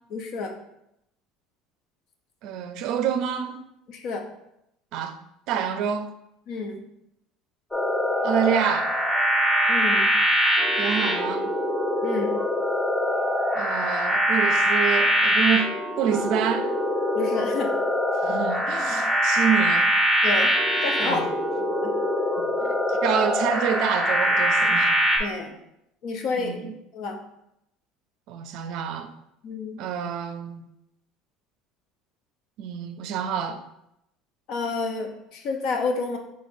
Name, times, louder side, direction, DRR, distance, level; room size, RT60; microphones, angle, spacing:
voice 1, 0.1-0.5 3.9-4.2 6.5-6.8 9.7-10.1 12.0-12.4 17.1-17.7 20.2-20.5 20.8-21.2 21.6-21.9 25.2-25.6 26.0-26.6 26.9-27.2 29.4-29.8 34.5-36.2, left 4 dB, 60° left, 0.7 m, -29 dB
voice 2, 2.4-3.6 4.9-5.2 5.5-6.1 8.2-8.9 10.8-11.5 13.6-16.7 18.2-19.9 21.0-21.2 22.4-25.0 26.4-26.7 28.3-29.1 29.8-30.6 32.6-33.6, right 8 dB, 65° right, 0.4 m, -27 dB
sound 1, 7.7-25.2, equal, 10° left, 0.8 m, -23 dB
5.0 x 3.4 x 2.6 m
supercardioid pair, 125°, 0 cm